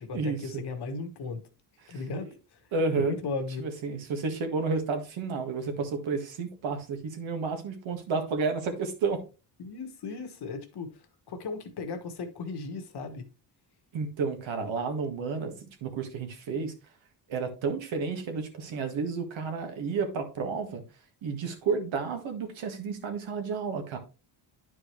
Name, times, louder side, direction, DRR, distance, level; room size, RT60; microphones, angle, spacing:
voice 1, 0.0-1.4 1.9-2.6 2.9-3.7 9.6-13.3, left 4 dB, 50° left, 1.4 m, -36 dB
voice 2, 2.7-3.2 3.6-9.2 13.9-16.7 17.3-20.8 21.2-24.0, right 4 dB, 70° right, 1.8 m, -31 dB
10.5 x 4.8 x 3.1 m
cardioid pair, 140°, 49 cm